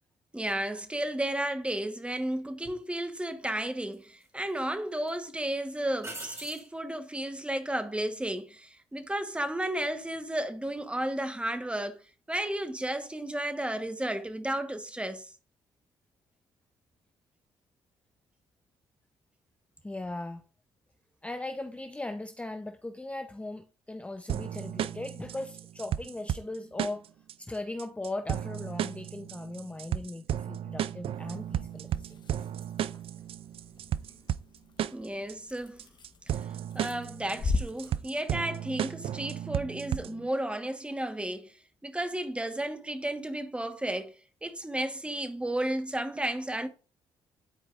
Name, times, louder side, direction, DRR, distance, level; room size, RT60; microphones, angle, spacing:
voice 1, 0.3-12.0 12.3-15.3 34.9-35.8 36.3-36.4 36.7-41.6 41.8-46.7, right 1 dB, 10° right, 1.2 m, -33 dB
sound 1, 2.6-2.8 3.9-4.6 5.0-5.1 6.0-6.7 9.8-10.2, right 1 dB, 25° right, 2.7 m, -43 dB
voice 2, 19.8-20.4 21.2-27.0 27.4-32.6, left 2 dB, 10° left, 0.6 m, -38 dB
sound 2, 24.3-40.3, right 10 dB, 55° right, 0.4 m, -34 dB
sound 3, 31.1-38.1, left 3 dB, 45° left, 1.1 m, -39 dB
11.0 x 4.7 x 2.4 m
supercardioid pair, 60°, 11 cm